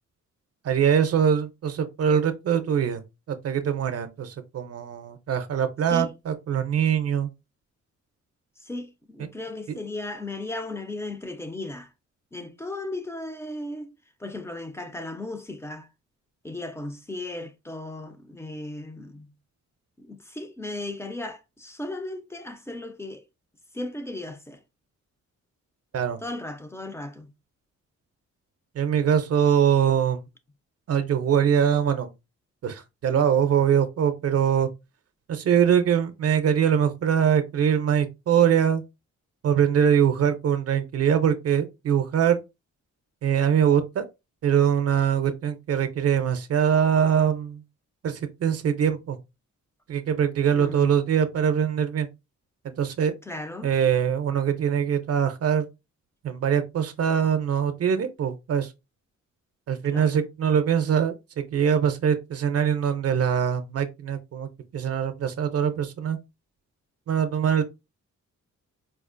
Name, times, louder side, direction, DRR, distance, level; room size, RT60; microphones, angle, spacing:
voice 1, 0.6-3.0 3.3-7.3 25.9-26.2 28.8-30.2 30.9-32.1 32.6-34.7 35.3-38.8 39.4-42.4 43.2-44.0 44.4-47.6 48.0-49.2 49.9-52.1 52.8-53.1 53.6-55.7 56.2-58.7 59.7-66.2 67.1-67.6, right 8 dB, 55° right, 0.5 m, -23 dB
voice 2, 8.6-11.9 12.3-13.9 14.2-15.9 16.4-19.4 20.0-23.2 23.7-24.6 26.2-27.3 50.5-51.0 53.2-53.7 59.8-60.2, left 2 dB, 10° left, 0.3 m, -36 dB
4.4 x 2.4 x 2.4 m
wide cardioid pair, 170°, 30 cm